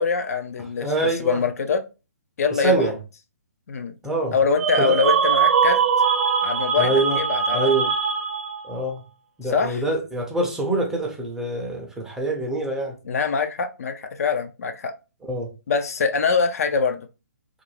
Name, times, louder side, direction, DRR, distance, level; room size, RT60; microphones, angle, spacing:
voice 1, 0.0-1.8 2.4-2.9 3.7-3.9 4.3-5.8 6.4-7.9 9.4-9.8 13.0-14.9 15.7-17.1, left 5 dB, 60° left, 0.4 m, -24 dB
voice 2, 0.8-1.4 2.6-2.9 4.0-4.4 4.8-5.0 6.8-7.2 7.5-7.8 8.6-9.0 9.4-13.0 15.2-15.5, right 2 dB, 5° right, 0.4 m, -25 dB
sound 1, 4.6-8.7, right 6 dB, 55° right, 0.7 m, -21 dB
2.4 x 2.0 x 3.1 m
hypercardioid pair, 145°, 9 cm